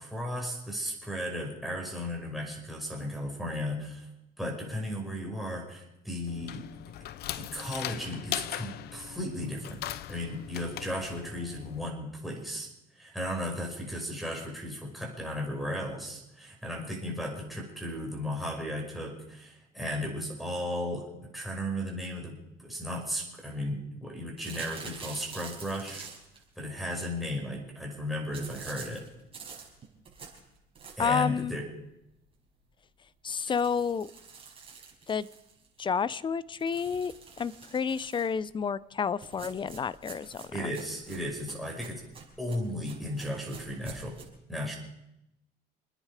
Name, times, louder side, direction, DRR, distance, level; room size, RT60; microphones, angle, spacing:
voice 1, 0.0-4.1 4.4-6.7 7.3-9.8 10.1-12.7 13.0-21.1 21.3-22.4 22.6-26.1 26.6-29.1 31.0-31.7 40.5-42.0 42.4-44.2 44.5-44.8, left 1 dB, ahead, -2 dB, 5.7 m, -35 dB
sound 1, 6.3-11.9, left 13 dB, 70° left, 0.7 m, -39 dB
sound 2, 24.4-26.4 28.3-31.2 31.7-31.8 32.1-32.2 32.5-32.6 33.3-35.8 36.6-38.4 39.2-44.2, right 5 dB, 35° right, 5.4 m, -47 dB
voice 2, 31.0-31.5 33.2-34.1 35.1-35.3 35.8-40.7, left 6 dB, 30° left, 18 dB, 0.6 m, -30 dB
28.0 x 10.0 x 5.0 m, 0.85 s
cardioid pair, 110°, 17 cm